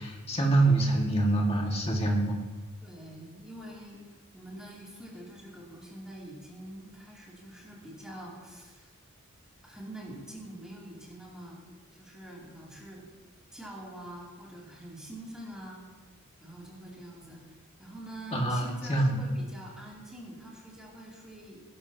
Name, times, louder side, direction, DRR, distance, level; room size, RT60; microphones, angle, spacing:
voice 1, 0.0-2.4 18.3-19.3, right 2 dB, 25° left, -1 dB, 1.9 m, -25 dB
voice 2, 2.8-4.0 4.3-8.9 9.6-11.6 11.9-13.1 13.5-15.8 16.4-21.6, right 1 dB, 5° right, -6 dB, 2.8 m, -45 dB
18.5 x 13.0 x 2.9 m, 1.4 s
head